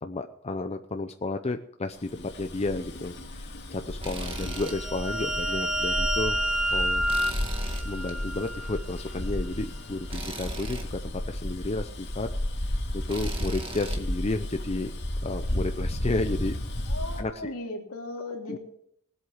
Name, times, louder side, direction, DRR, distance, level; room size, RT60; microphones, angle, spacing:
voice 1, 0.0-6.4 6.7-7.1 7.8-12.3 12.6-12.8 13.1-14.9 15.2-16.6 17.2-17.5 18.5-18.6, left 2 dB, 30° left, 7 dB, 0.6 m, -32 dB
Bus, 2.1-17.2, left 1 dB, 55° left, 2.2 m, -33 dB
Tools, 4.0-4.8 5.2-5.3 7.1-8.1 10.1-10.9 13.1-14.0, right 3 dB, 25° right, 1.8 m, -39 dB
sound 1, 4.3-8.8, right 1 dB, 5° right, 0.9 m, -29 dB
voice 2, 16.9-18.6, left 2 dB, 70° left, 1 dB, 2.9 m, -36 dB
19.0 x 8.2 x 6.3 m, 0.69 s
head